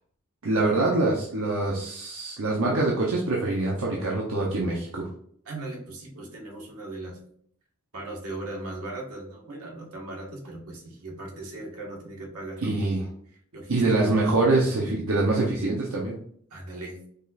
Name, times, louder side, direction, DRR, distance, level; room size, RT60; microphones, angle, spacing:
voice 1, 0.4-5.1 12.6-13.0 13.7-16.1, right 2 dB, 70° right, -3 dB, 0.8 m, -24 dB
voice 2, 5.4-7.2 7.9-12.9 13.3-14.1 16.5-17.0, right 2 dB, 85° right, -2 dB, 1.6 m, -38 dB
5.3 x 2.5 x 4.1 m, 0.63 s
head